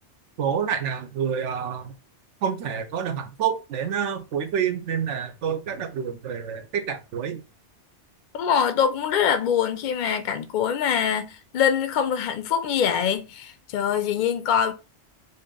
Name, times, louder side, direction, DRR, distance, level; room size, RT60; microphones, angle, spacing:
voice 1, 0.4-1.9 2.4-7.4, right 8 dB, 85° right, 1.0 m, -28 dB
voice 2, 8.3-14.7, left 8 dB, 55° left, 0.5 m, -24 dB
2.9 x 2.8 x 3.6 m
omnidirectional pair, 1.2 m